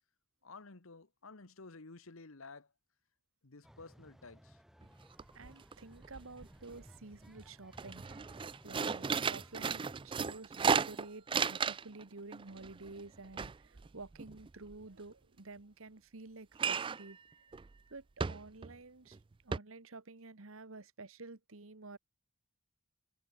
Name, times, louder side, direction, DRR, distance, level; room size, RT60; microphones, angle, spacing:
voice 1, 0.4-2.7 3.4-4.6, left 3 dB, 70° left, 1.3 m, -53 dB
sound 1, 3.6-10.4, equal, ahead, 1.1 m, -59 dB
sound 2, 4.8-4.9 5.2-5.7 6.0-6.8 7.2-7.4 7.7-12.0 12.3-14.7 16.6-17.1 17.5-17.7 18.2-18.8 19.1-19.2 19.5-19.6, right 6 dB, 25° right, 0.3 m, -35 dB
voice 2, 5.3-8.0 8.6-17.2 17.9-19.2 19.4-22.0, right 3 dB, 65° right, 1.4 m, -50 dB
head